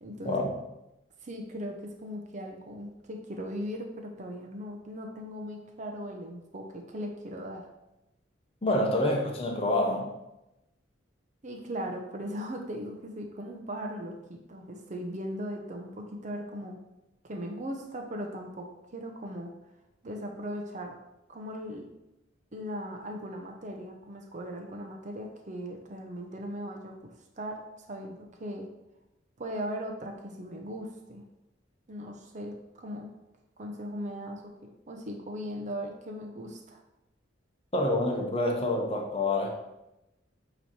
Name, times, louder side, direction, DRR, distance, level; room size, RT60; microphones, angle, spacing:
voice 1, 0.0-0.4 1.2-7.7 11.4-16.8 17.2-19.5 20.0-20.9 21.3-21.9 22.5-27.1 27.4-28.7 29.4-31.2 31.9-33.1 33.6-36.8, equal, 40° right, 2 dB, 0.8 m, -38 dB
voice 2, 8.6-10.1 37.7-39.5, left 1 dB, 30° left, 0 dB, 1.1 m, -27 dB
8.3 x 3.1 x 4.4 m, 0.91 s
head